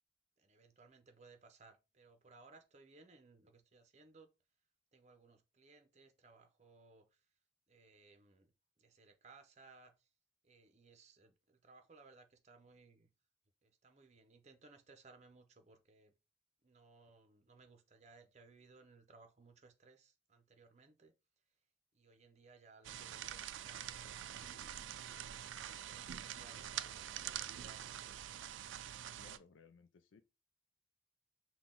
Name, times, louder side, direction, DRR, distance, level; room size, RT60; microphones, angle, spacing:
voice 1, 0.4-4.3 4.9-7.3 7.7-8.5 8.8-10.1 10.4-13.1 13.6-16.1 16.6-21.1 21.9-24.9 25.3-28.2, right 3 dB, 35° right, 0.7 m, -63 dB
sound 1, 22.8-29.4, right 10 dB, 85° right, 0.4 m, -45 dB
voice 2, 29.2-30.2, left 5 dB, 90° left, 0.4 m, -62 dB
5.9 x 2.3 x 3.7 m
head